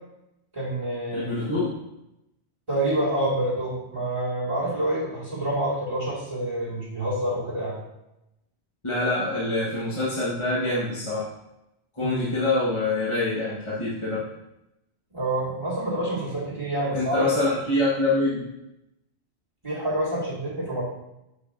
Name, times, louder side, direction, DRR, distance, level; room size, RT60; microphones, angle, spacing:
voice 1, 0.5-1.4 2.7-7.8 12.0-12.2 15.1-17.4 19.6-20.8, right 1 dB, 30° right, -7 dB, 2.1 m, -27 dB
voice 2, 1.1-1.8 8.8-11.3 11.9-14.2 16.9-18.5, left 2 dB, 30° left, -8 dB, 1.2 m, -25 dB
6.8 x 6.4 x 2.5 m, 0.88 s
omnidirectional pair, 1.1 m